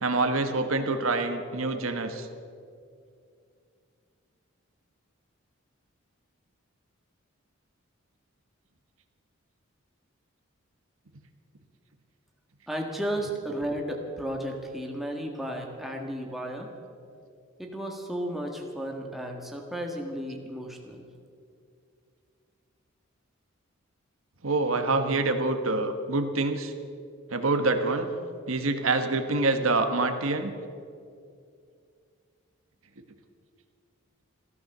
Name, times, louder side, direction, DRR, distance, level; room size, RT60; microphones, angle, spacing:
voice 1, 0.0-2.3 24.4-26.7 27.3-28.1 28.5-30.5, right 3 dB, 85° right, 7 dB, 1.3 m, -26 dB
voice 2, 12.7-16.7 17.6-21.0, right 1 dB, ahead, 0 dB, 1.6 m, -33 dB
14.5 x 13.5 x 6.7 m, 2.4 s
head